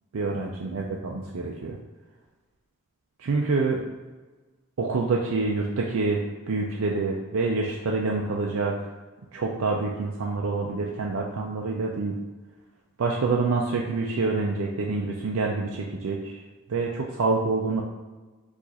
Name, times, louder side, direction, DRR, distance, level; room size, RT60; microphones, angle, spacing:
voice 1, 0.1-1.8 3.2-3.8 4.8-8.9 9.3-12.2 13.0-16.4 16.7-17.8, right 3 dB, 85° right, -1 dB, 0.5 m, -27 dB
4.7 x 2.5 x 4.0 m, 1.3 s
head